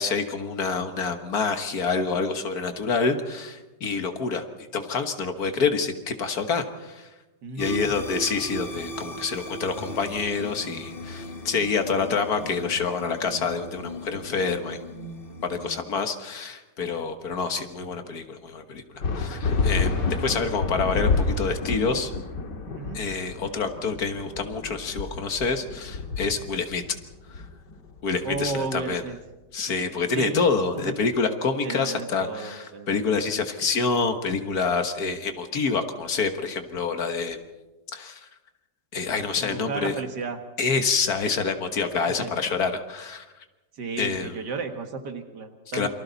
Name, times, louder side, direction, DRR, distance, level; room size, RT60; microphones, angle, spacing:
voice 1, 0.0-4.5 4.7-7.1 7.6-14.8 15.4-18.8 19.1-19.9 20.2-22.1 22.9-26.8 27.3-27.4 28.0-29.0 29.5-37.4 37.9-38.3 38.9-40.0 40.6-43.3 44.0-44.4 45.7-45.9, left 4 dB, 60° left, 7 dB, 1.9 m, -27 dB
voice 2, 7.4-8.0 22.8-23.0 28.2-29.2 30.1-30.4 30.9-31.0 31.6-32.9 39.4-40.4 42.2-42.3 43.8-45.9, right 4 dB, 75° right, 5 dB, 2.3 m, -33 dB
sound 1, 7.6-15.8, equal, 35° left, 1.5 m, -38 dB
sound 2, 19.0-29.0, left 4 dB, 90° left, 2.4 m, -29 dB
28.5 x 24.0 x 4.1 m, 1.1 s
omnidirectional pair, 1.8 m